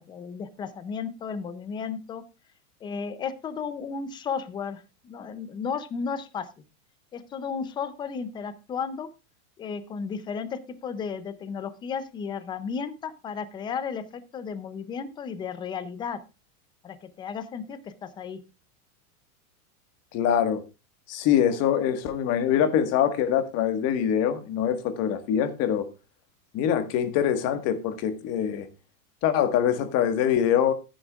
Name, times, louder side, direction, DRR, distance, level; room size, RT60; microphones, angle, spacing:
voice 1, 0.0-2.2 2.8-6.5 7.1-9.1 9.6-16.2 16.8-18.4, left 6 dB, 10° left, 0.5 m, -34 dB
voice 2, 20.1-20.6 21.1-25.9 26.5-28.7 29.2-30.7, left 9 dB, 35° left, 1.5 m, -24 dB
14.0 x 10.0 x 2.4 m
supercardioid pair, 155°, 45 cm